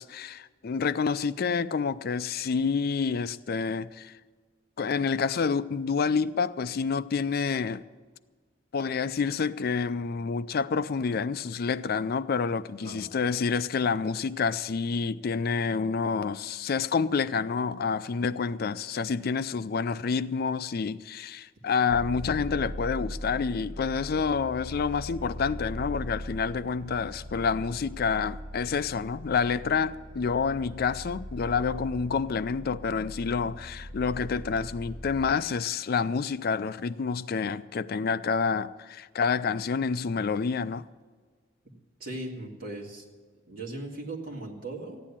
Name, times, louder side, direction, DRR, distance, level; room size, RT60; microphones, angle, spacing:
voice 1, 0.0-4.2 4.8-7.8 8.7-40.9, left 5 dB, 50° left, 0.4 m, -28 dB
sound 1, 21.9-35.3, equal, 85° right, 1.5 m, -40 dB
voice 2, 42.0-43.0 43.5-45.0, right 2 dB, 50° right, 2.8 m, -38 dB
15.0 x 10.0 x 7.4 m
head